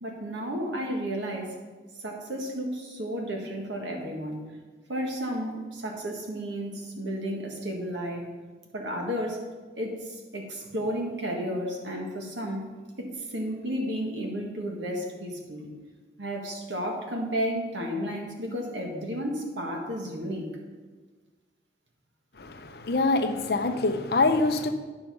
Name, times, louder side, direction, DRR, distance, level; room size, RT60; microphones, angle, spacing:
voice 1, 0.0-1.6 2.0-4.4 4.9-8.3 8.7-9.4 9.8-15.7 16.2-20.5, equal, 80° right, 1.7 m, -32 dB
voice 2, 22.4-24.7, left 3 dB, 60° left, 0.7 m, -25 dB
10.0 x 5.6 x 5.5 m
head